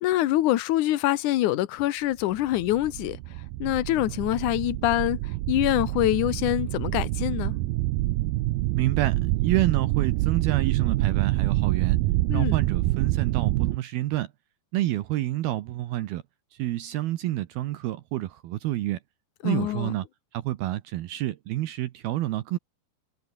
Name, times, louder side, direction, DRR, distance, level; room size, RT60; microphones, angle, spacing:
voice 1, 0.0-3.2 3.6-5.2 5.5-7.5 12.3-12.6 19.4-19.9, left 15 dB, 80° left, 1.8 m, -25 dB
sound 1, 2.3-13.8, right 18 dB, 85° right, 2.1 m, -26 dB
voice 2, 8.8-12.0 12.3-14.3 14.7-16.2 16.6-19.0 19.4-20.0 20.3-22.6, right 15 dB, 70° right, 2.6 m, -28 dB
omnidirectional pair, 5.0 m